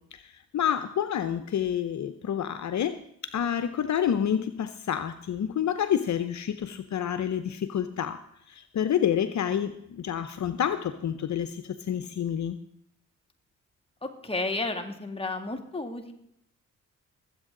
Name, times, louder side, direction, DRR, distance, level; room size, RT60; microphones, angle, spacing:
voice 1, 0.1-3.0 3.2-8.2 8.5-12.6, left 9 dB, 60° left, 11 dB, 0.8 m, -28 dB
voice 2, 14.0-16.1, left 2 dB, 15° left, 4 dB, 2.4 m, -32 dB
20.5 x 8.3 x 3.9 m, 0.76 s
supercardioid pair, 55°, 32 cm